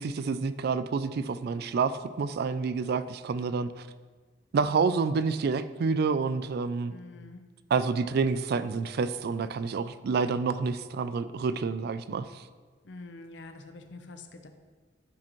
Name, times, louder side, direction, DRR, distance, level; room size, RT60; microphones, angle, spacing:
voice 1, 0.0-3.9 4.5-6.9 7.7-12.4, right 5 dB, 55° right, 13 dB, 0.3 m, -28 dB
voice 2, 6.9-7.4 12.8-14.5, left 3 dB, 70° left, 6 dB, 0.7 m, -46 dB
10.5 x 5.0 x 3.1 m, 1.4 s
head